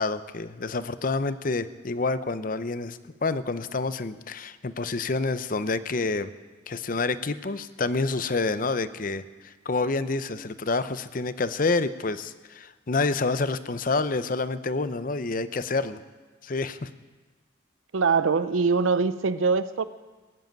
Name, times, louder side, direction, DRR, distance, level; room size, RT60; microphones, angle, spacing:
voice 1, 0.0-6.3 6.7-16.0 16.4-16.9, left 3 dB, 45° left, 0.6 m, -28 dB
voice 2, 17.9-19.8, right 5 dB, 85° right, 0.5 m, -23 dB
20.0 x 7.7 x 9.2 m
head